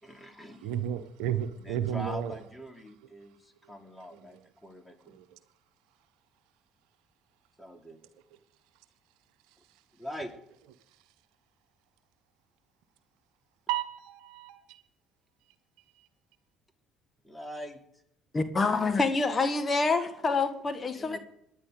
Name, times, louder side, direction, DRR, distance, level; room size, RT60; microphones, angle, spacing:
voice 1, 0.0-0.7 1.6-5.2 7.6-8.0 9.9-10.3 17.2-18.0 20.9-21.2, equal, 10° left, 2.9 m, -43 dB
voice 2, 0.6-2.3 4.1-4.4 5.1-5.4 13.7-14.8 16.0-16.1, right 10 dB, 65° right, 1.0 m, -33 dB
voice 3, 18.3-21.2, left 3 dB, 30° left, 1.7 m, -27 dB
27.0 x 10.5 x 4.0 m
figure-of-eight pair, 55°, 0 cm